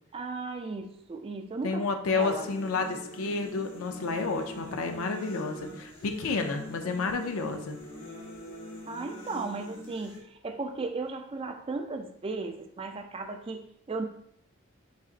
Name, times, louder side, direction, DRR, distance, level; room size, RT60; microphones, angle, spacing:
voice 1, 0.1-2.5 8.9-14.0, right 3 dB, 25° right, 5 dB, 0.3 m, -36 dB
voice 2, 1.6-7.8, left 4 dB, 75° left, 5 dB, 0.5 m, -30 dB
sound 1, 2.2-10.2, left 1 dB, 60° left, 1.0 m, -44 dB
4.1 x 3.7 x 2.5 m, 0.73 s
head